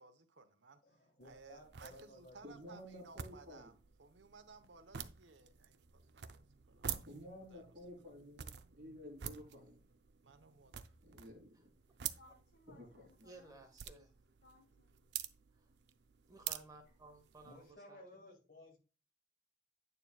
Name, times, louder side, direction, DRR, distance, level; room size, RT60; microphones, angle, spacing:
voice 1, 0.0-7.0 7.5-7.7 10.2-11.0, right 4 dB, 85° right, 1.0 m, -60 dB
voice 2, 0.8-2.7 17.4-18.8, left 1 dB, 50° left, 2.2 m, -58 dB
sound 1, 1.2-17.7, right 9 dB, 65° right, 0.5 m, -49 dB
voice 3, 2.4-3.7 6.7-9.8 11.0-11.7 12.8-13.3, equal, 50° right, 2.9 m, -53 dB
voice 4, 12.2-13.6 14.4-15.2, left 2 dB, 90° left, 1.0 m, -65 dB
voice 5, 13.2-14.1 15.6-15.7 16.3-18.2, right 2 dB, 20° right, 1.4 m, -57 dB
8.9 x 6.7 x 2.3 m
head